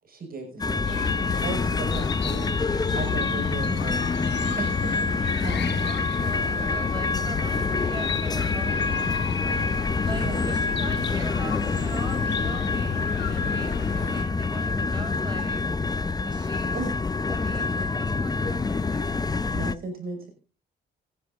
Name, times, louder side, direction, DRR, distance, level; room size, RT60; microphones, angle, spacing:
voice 1, 0.0-1.1 1.4-4.0 4.6-5.9 10.1-10.4 16.7-16.9 19.5-20.3, right 3 dB, 50° right, 4 dB, 5.9 m, -36 dB
sound 1, 0.6-19.7, left 3 dB, 20° left, 0.6 m, -27 dB
Chirp tweet, 0.8-14.3, left 9 dB, 60° left, 1.1 m, -32 dB
voice 2, 5.4-9.7 10.1-15.6 16.2-16.8 17.3-19.2, right 1 dB, 20° right, 6 dB, 6.2 m, -41 dB
24.5 x 11.0 x 2.5 m, 0.34 s
cardioid pair, 90°, 20 cm